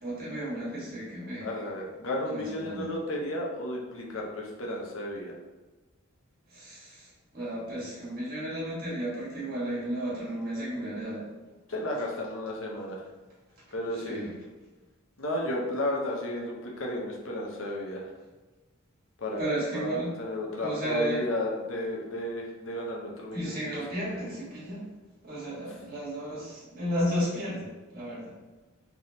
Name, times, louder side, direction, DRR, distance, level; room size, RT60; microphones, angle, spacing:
voice 1, 0.0-1.5 2.3-2.9 6.5-11.3 14.1-14.3 19.4-20.2 20.6-21.2 23.3-24.9 25.2-28.4, equal, 45° right, -7 dB, 1.4 m, -33 dB
voice 2, 1.4-5.3 11.7-13.0 13.7-14.2 15.2-18.1 19.2-23.6, left 1 dB, 65° left, -1 dB, 0.8 m, -33 dB
3.4 x 3.0 x 2.8 m, 1.2 s
head